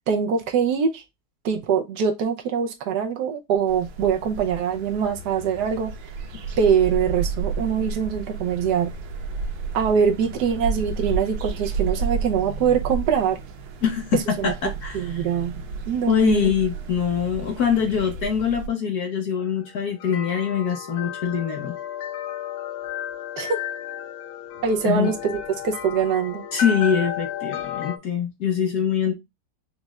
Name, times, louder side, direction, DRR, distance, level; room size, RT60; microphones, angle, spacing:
voice 1, 0.1-1.0 1.4-5.9 6.6-8.9 9.7-13.4 14.1-14.5 14.9-15.5 15.9-16.5 23.4-23.6 24.6-26.4, right 7 dB, 70° right, 1.0 m, -23 dB
sound 1, 3.7-18.7, right 4 dB, 85° right, 1.7 m, -32 dB
voice 2, 13.8-15.2 16.1-21.7 24.8-25.1 26.5-29.2, left 7 dB, 60° left, 1.1 m, -23 dB
sound 2, 19.4-28.0, left 8 dB, 85° left, 1.7 m, -33 dB
5.2 x 3.0 x 2.2 m
omnidirectional pair, 2.3 m